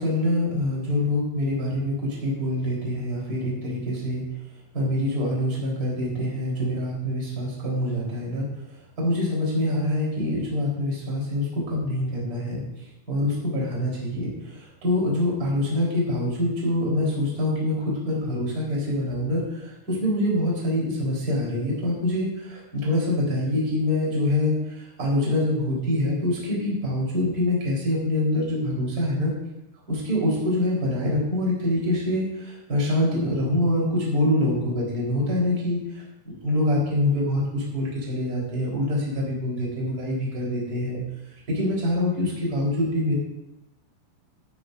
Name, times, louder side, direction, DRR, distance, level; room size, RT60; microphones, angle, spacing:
voice 1, 0.0-4.2 4.7-8.5 9.0-12.6 13.1-29.3 29.9-35.8 36.2-41.0 41.5-43.2, left 1 dB, 25° right, -4 dB, 4.0 m, -25 dB
18.0 x 11.5 x 2.6 m, 0.90 s
omnidirectional pair, 4.4 m